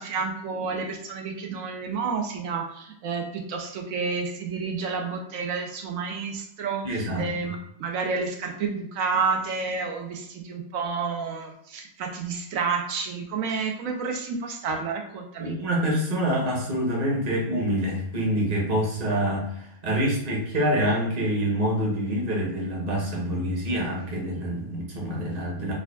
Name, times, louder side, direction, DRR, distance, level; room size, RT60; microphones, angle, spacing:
voice 1, 0.0-15.5, right 5 dB, 80° right, 3 dB, 1.0 m, -30 dB
voice 2, 6.8-7.3 15.4-25.7, equal, 35° right, -2 dB, 0.9 m, -26 dB
4.9 x 2.3 x 2.2 m, 0.74 s
omnidirectional pair, 1.4 m